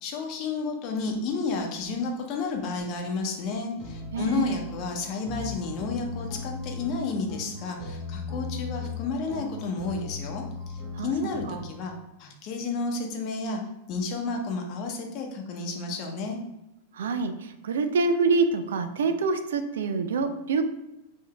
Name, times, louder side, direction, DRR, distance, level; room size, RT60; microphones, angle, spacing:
voice 1, 0.0-13.6 13.9-16.4, left 3 dB, 45° left, 2 dB, 0.8 m, -31 dB
sound 1, 3.8-11.7, left 4 dB, 15° right, 1.2 m, -37 dB
voice 2, 4.1-4.6 10.9-11.1 11.5-11.6 16.9-20.6, right 4 dB, 70° right, 9 dB, 0.3 m, -26 dB
5.6 x 2.6 x 2.3 m, 0.92 s
hypercardioid pair, 95°, 0 cm